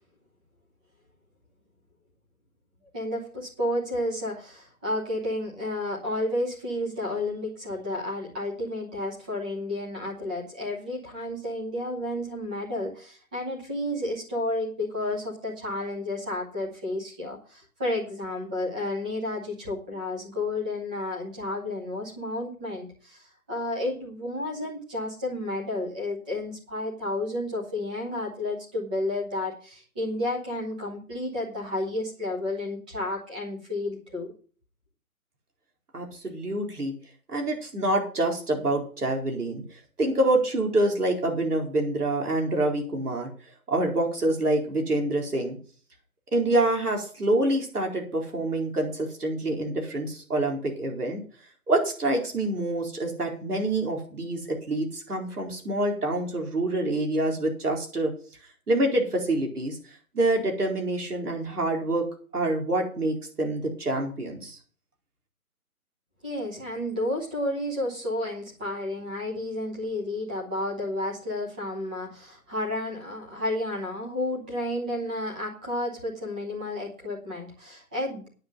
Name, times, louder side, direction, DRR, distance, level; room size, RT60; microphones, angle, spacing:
voice 1, 2.9-34.3 66.2-78.3, left 1 dB, 5° right, -3 dB, 0.8 m, -31 dB
voice 2, 35.9-36.9 37.3-39.6 40.0-43.3 43.7-45.6 46.3-51.2 51.7-58.1 58.7-59.8 60.1-62.1 62.3-64.6, right 1 dB, 85° right, 1 dB, 4.5 m, -26 dB
9.5 x 6.9 x 7.6 m, 0.42 s
figure-of-eight pair, 160°, 45 cm